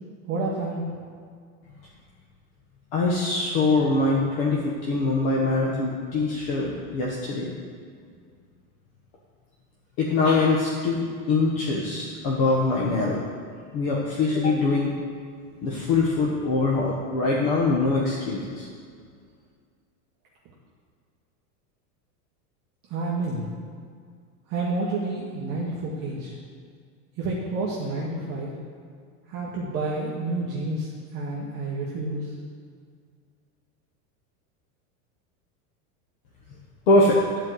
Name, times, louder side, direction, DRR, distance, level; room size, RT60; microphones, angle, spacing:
voice 1, 0.3-0.8 22.9-23.5 24.5-26.3 27.2-28.5 29.3-32.3, right 2 dB, 25° right, -6 dB, 1.0 m, -29 dB
voice 2, 2.9-7.5 10.0-13.2 13.7-14.9 15.6-18.7 36.9-37.2, left 3 dB, 40° left, -3 dB, 1.1 m, -23 dB
10.5 x 4.6 x 7.7 m, 2.1 s
supercardioid pair, 180°, 44 cm